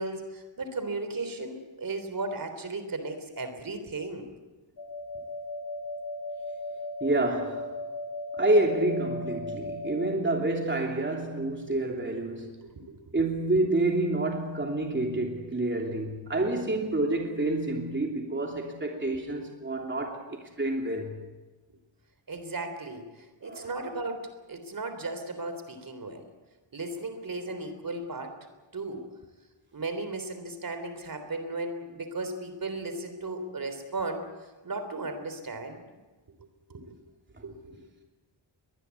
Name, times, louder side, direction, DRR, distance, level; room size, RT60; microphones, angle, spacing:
voice 1, 0.0-4.3 12.6-13.0 19.0-19.2 22.3-23.0 23.4-26.2 26.7-28.3 28.7-29.0 29.7-34.3 34.6-35.8 36.4-37.0 37.4-37.8, right 2 dB, 50° right, 3.6 m, -36 dB
sound 1, 4.8-10.2, left 2 dB, 50° left, 1.6 m, -37 dB
voice 2, 7.0-7.7 8.4-12.5 13.1-20.2 20.6-21.1 23.4-23.7, right 2 dB, 25° right, 3.1 m, -28 dB
22.5 x 20.5 x 8.4 m
wide cardioid pair, 95°, 45 cm